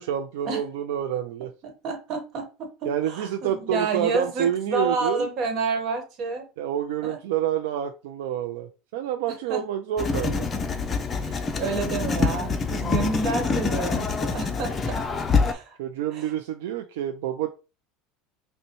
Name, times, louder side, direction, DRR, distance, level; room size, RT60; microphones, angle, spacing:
voice 1, 0.0-1.5 2.8-5.3 6.6-10.5 15.8-17.5, right 10 dB, 85° right, 6 dB, 0.4 m, -28 dB
voice 2, 1.8-6.4 7.0-7.2 9.3-9.6 11.2-15.0 15.4-15.8 16.1-16.3, right 3 dB, 50° right, 5 dB, 1.2 m, -29 dB
Writing, 10.0-15.5, left 4 dB, 25° left, 0.5 m, -26 dB
5.3 x 2.2 x 3.0 m, 0.31 s
supercardioid pair, 130°, 0 cm